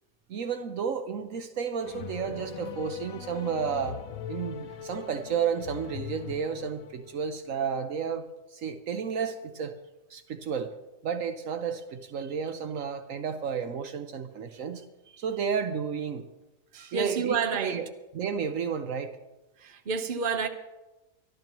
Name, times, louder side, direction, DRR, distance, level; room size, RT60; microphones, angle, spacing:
voice 1, 0.3-4.0 4.3-9.7 10.1-10.7 11.0-14.8 15.2-16.3 16.9-17.9 18.1-19.2, right 7 dB, 70° right, 1.2 m, -32 dB
sound 1, 1.8-7.4, left 9 dB, 80° left, 1.2 m, -40 dB
voice 2, 16.7-17.8 19.6-20.5, right 6 dB, 40° right, 1.1 m, -29 dB
25.0 x 12.0 x 3.0 m
omnidirectional pair, 1.5 m